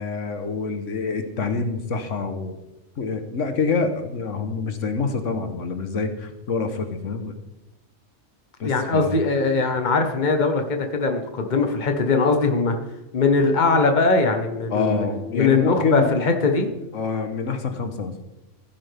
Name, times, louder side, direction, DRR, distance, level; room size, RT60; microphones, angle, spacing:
voice 1, 0.0-2.6 3.0-7.3 8.6-9.1 14.7-16.2 16.9-18.1, left 4 dB, 80° left, 7 dB, 1.4 m, -26 dB
voice 2, 8.6-12.7 13.1-15.0 15.3-16.7, left 3 dB, 40° left, 5 dB, 1.4 m, -21 dB
15.5 x 10.5 x 3.5 m, 0.99 s
omnidirectional pair, 1.3 m